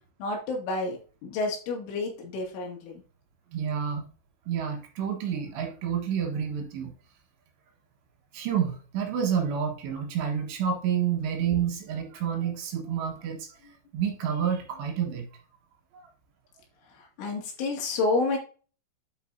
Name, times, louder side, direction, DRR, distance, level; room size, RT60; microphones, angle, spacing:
voice 1, 0.2-3.0 17.0-18.4, left 3 dB, 75° left, 0 dB, 4.6 m, -30 dB
voice 2, 3.5-4.1 4.5-6.9 8.3-13.5 13.9-15.3 15.9-16.0, right 8 dB, 70° right, 2 dB, 3.3 m, -29 dB
11.0 x 4.9 x 2.7 m, 0.38 s
omnidirectional pair, 5.6 m